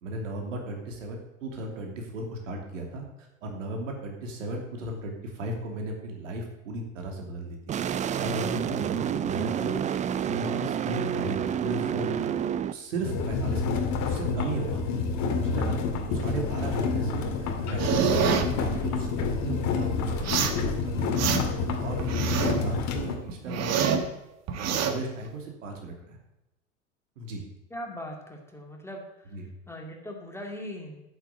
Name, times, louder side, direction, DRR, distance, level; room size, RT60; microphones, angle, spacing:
voice 1, 0.0-7.6 8.1-9.8 10.2-12.3 12.7-14.8 15.4-21.3 21.6-24.0 24.5-26.2 27.2-27.4 29.3-29.5, right 1 dB, 70° right, 2 dB, 2.9 m, -36 dB
sound 1, 7.7-12.7, right 9 dB, 20° right, 0.5 m, -29 dB
sound 2, 13.0-23.1, left 4 dB, 45° left, 2.1 m, -28 dB
sound 3, 17.8-18.5 20.2-20.6 21.0-21.6 22.0-22.6 23.0-24.1 24.5-24.9, right 7 dB, 40° right, 1.6 m, -26 dB
voice 2, 27.7-29.3 29.7-31.0, equal, 5° left, 1 dB, 2.4 m, -40 dB
8.9 x 8.1 x 7.7 m, 0.94 s
hypercardioid pair, 85°, 39 cm